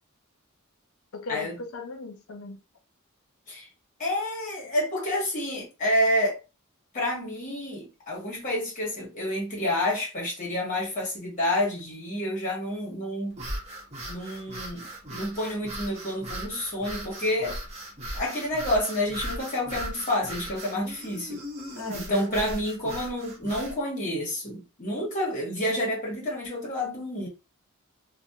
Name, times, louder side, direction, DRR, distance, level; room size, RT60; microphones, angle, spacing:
voice 1, 1.1-2.6 21.8-22.5, left 3 dB, 70° left, 0.5 m, -38 dB
voice 2, 4.0-6.4 6.9-13.4 14.1-17.6 18.1-21.4 21.9-27.3, left 1 dB, 35° left, 1.5 m, -29 dB
sound 1, 13.3-23.8, right 1 dB, 30° right, 1.0 m, -38 dB
3.2 x 2.4 x 2.8 m
head